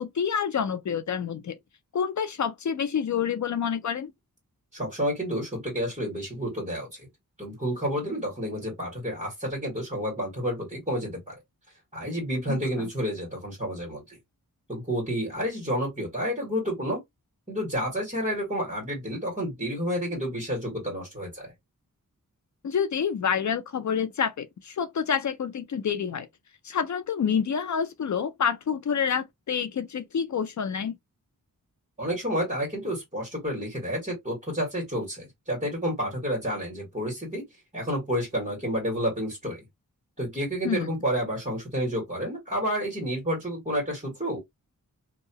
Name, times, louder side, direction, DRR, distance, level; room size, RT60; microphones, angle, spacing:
voice 1, 0.0-1.6 1.9-4.1 12.5-12.9 22.6-26.3 26.6-30.9 40.6-40.9, left 7 dB, 55° left, 0.5 m, -28 dB
voice 2, 4.7-7.1 7.4-11.3 11.9-14.2 14.7-17.0 17.5-21.5 32.0-37.4 37.7-39.6 40.2-44.4, equal, 20° right, 1.6 m, -30 dB
2.7 x 2.3 x 2.8 m
wide cardioid pair, 100°, 34 cm